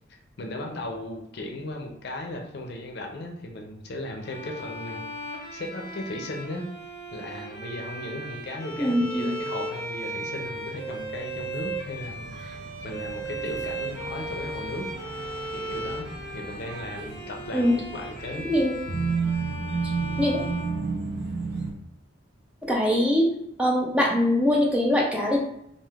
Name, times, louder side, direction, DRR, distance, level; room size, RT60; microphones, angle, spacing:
voice 1, 0.4-6.6 7.1-12.3 12.6-14.9 15.5-18.5, left 1 dB, 60° left, 2 dB, 0.5 m, -36 dB
Bowed string instrument, 4.2-21.4, right 1 dB, 15° left, 1.2 m, -37 dB
voice 2, 8.8-9.3 17.5-17.8 18.5-18.7 20.2-20.4 22.6-23.3 23.6-25.4, left 1 dB, 5° right, -2 dB, 0.4 m, -22 dB
sound 1, 10.2-21.7, right 4 dB, 60° right, 0.5 m, -34 dB
3.3 x 2.5 x 2.4 m, 0.77 s
head